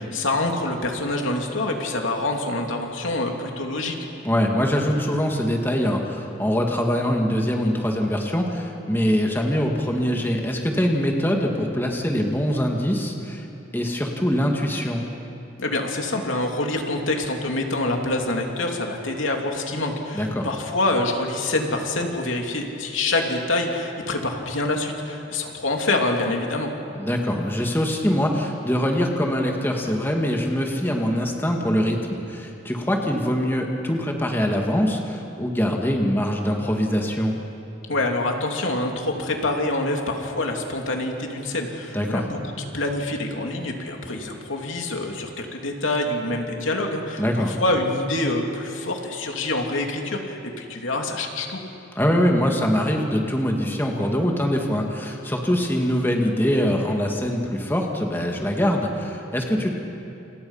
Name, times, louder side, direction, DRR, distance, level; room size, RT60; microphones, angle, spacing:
voice 1, 0.1-3.9 15.6-26.7 37.9-51.6, left 2 dB, 85° left, 2 dB, 3.0 m, -26 dB
voice 2, 4.2-13.5 13.7-15.0 20.1-20.5 27.0-37.4 41.9-42.3 47.2-47.6 52.0-59.7, equal, 10° left, 1 dB, 2.0 m, -23 dB
29.0 x 28.0 x 5.7 m, 2.8 s
head